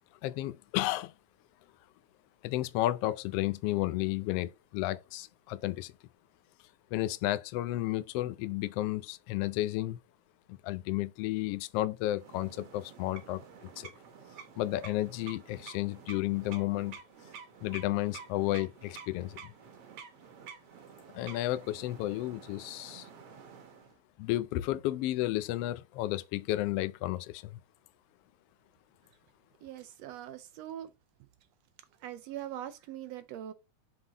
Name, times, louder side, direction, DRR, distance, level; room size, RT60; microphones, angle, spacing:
voice 1, 0.2-1.1 2.4-5.9 6.9-10.0 10.5-13.4 13.8-13.9 14.6-17.0 17.6-19.5 21.1-23.1 24.2-27.6, left 16 dB, 90° left, 1.3 m, -32 dB
sound 1, 12.1-24.0, right 7 dB, 60° right, 1.9 m, -50 dB
voice 2, 29.6-30.9 32.0-33.5, right 11 dB, 80° right, 1.5 m, -42 dB
7.7 x 3.9 x 3.9 m
omnidirectional pair, 3.4 m